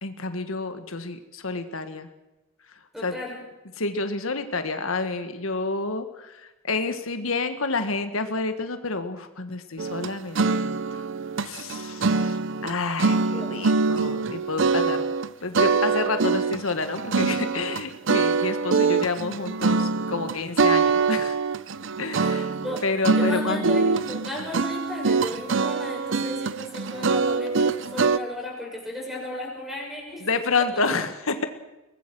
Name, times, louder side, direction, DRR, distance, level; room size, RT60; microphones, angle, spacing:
voice 1, 0.0-2.1 3.0-3.1 3.8-11.0 11.4-15.0 15.4-21.4 22.0-22.5 22.8-23.7 30.2-31.5, left 3 dB, 80° left, 8 dB, 1.6 m, -29 dB
voice 2, 2.9-3.4 13.3-13.6 22.2-22.8 23.1-30.3 30.7-30.8, left 1 dB, ahead, -1 dB, 6.8 m, -35 dB
sound 1, 9.8-12.7 13.0-15.3 15.5-28.2, right 4 dB, 60° right, 0.7 m, -24 dB
23.0 x 19.5 x 6.2 m, 1.1 s
head